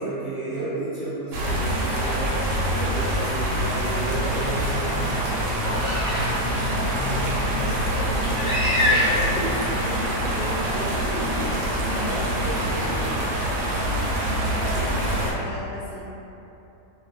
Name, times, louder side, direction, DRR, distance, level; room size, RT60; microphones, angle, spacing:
voice 1, 0.0-11.5 11.8-13.2 13.7-13.9, right 1 dB, 55° right, -14 dB, 0.7 m, -34 dB
sound 1, 1.3-15.3, right 1 dB, 85° right, 1.2 m, -25 dB
sound 2, 5.6-6.4 7.0-7.1 8.3-9.5, left 1 dB, 30° left, 0.6 m, -24 dB
voice 2, 13.7-16.0, left 1 dB, 70° left, -8 dB, 0.9 m, -40 dB
2.7 x 2.3 x 2.4 m, 2.9 s
omnidirectional pair, 1.8 m